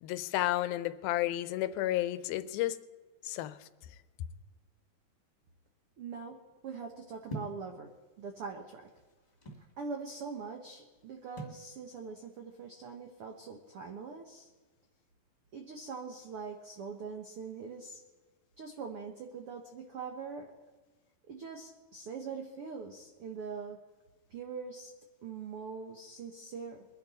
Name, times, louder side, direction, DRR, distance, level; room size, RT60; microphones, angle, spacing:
voice 1, 0.0-2.8 3.2-3.6, left 15 dB, 85° left, 14 dB, 2.5 m, -32 dB
voice 2, 6.0-6.4 6.6-7.9 8.2-8.9 9.8-14.5 15.5-18.0 18.6-20.5 21.3-23.8 24.3-24.9 25.2-26.8, right 5 dB, 85° right, 3 dB, 1.2 m, -42 dB
sound 1, 7.3-7.6 8.5-9.7 11.4-11.7, right 2 dB, 15° left, 1.6 m, -42 dB
23.0 x 10.5 x 4.1 m, 1.3 s
omnidirectional pair, 4.3 m